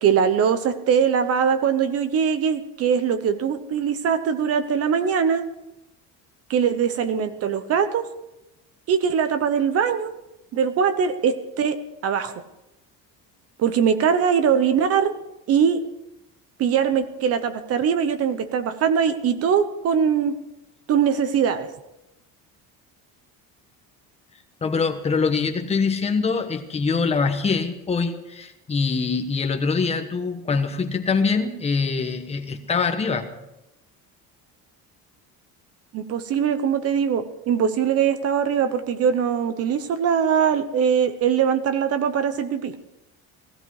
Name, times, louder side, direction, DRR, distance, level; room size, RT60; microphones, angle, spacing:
voice 1, 0.0-5.4 6.5-8.0 8.9-10.1 10.5-11.8 12.0-12.3 13.6-15.1 15.5-15.8 16.6-20.4 20.9-21.7 35.9-42.7, right 7 dB, 40° right, 10 dB, 0.9 m, -21 dB
voice 2, 24.6-33.3, left 4 dB, 15° left, 6 dB, 1.2 m, -24 dB
16.0 x 16.0 x 4.8 m, 0.91 s
cardioid pair, 175°, 36 cm